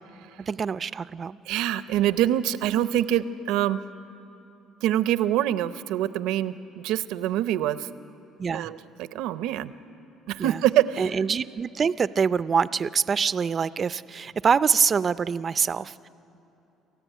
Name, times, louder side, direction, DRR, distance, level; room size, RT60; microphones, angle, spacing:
voice 1, 0.5-1.4 8.4-8.7 10.4-10.6 11.0-16.1, right 6 dB, 35° right, 16 dB, 0.5 m, -25 dB
voice 2, 1.5-3.8 4.8-7.9 8.5-9.7 10.3-11.1, right 12 dB, 80° right, 14 dB, 0.7 m, -25 dB
27.0 x 15.0 x 9.3 m, 2.9 s
cardioid pair, 110°, 0 cm